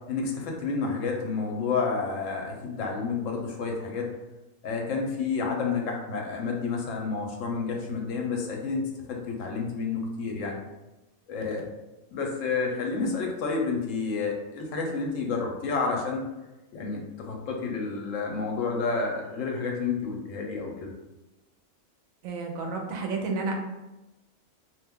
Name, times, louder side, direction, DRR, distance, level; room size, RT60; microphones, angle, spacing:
voice 1, 0.1-4.1 4.6-10.6 11.3-11.7 12.1-16.3 16.7-20.9, left 4 dB, 75° left, 0 dB, 1.0 m, -30 dB
voice 2, 22.2-23.5, right 4 dB, 85° right, 2 dB, 1.0 m, -31 dB
2.5 x 2.2 x 3.5 m, 1.0 s
omnidirectional pair, 1.4 m